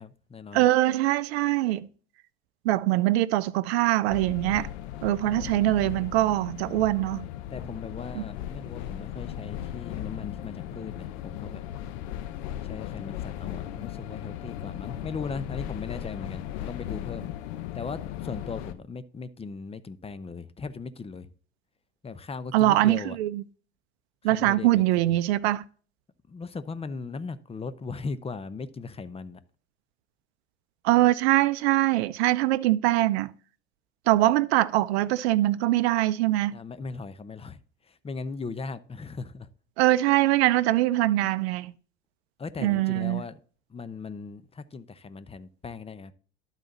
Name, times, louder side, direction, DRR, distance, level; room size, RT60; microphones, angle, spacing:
voice 1, 0.0-0.6 5.2-6.1 7.5-11.6 12.6-17.3 17.7-21.3 22.0-23.2 24.3-25.1 26.3-29.4 36.5-39.5 42.4-43.4 43.7-46.1, left 4 dB, 20° left, 0.7 m, -38 dB
voice 2, 0.5-1.9 2.6-4.7 5.0-7.3 8.1-8.2 22.5-23.4 24.2-25.6 30.8-33.3 34.1-36.5 39.8-41.7 42.6-43.2, right 16 dB, 75° right, 0.5 m, -23 dB
sound 1, 4.1-18.7, left 12 dB, 70° left, 0.9 m, -37 dB
12.0 x 4.1 x 4.0 m
hypercardioid pair, 75°, 32 cm